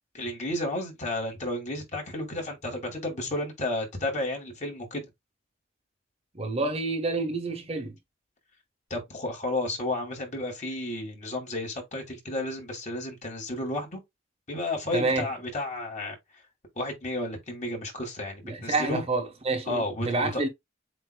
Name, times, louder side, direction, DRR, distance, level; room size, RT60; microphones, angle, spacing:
voice 1, 0.1-5.0 8.9-14.0 14.5-16.2 16.8-19.0 19.7-20.4, left 1 dB, 40° left, 2.6 m, -32 dB
voice 2, 6.3-8.0 14.9-15.3 18.5-20.5, right 3 dB, 30° right, 1.1 m, -28 dB
7.9 x 2.9 x 2.2 m
head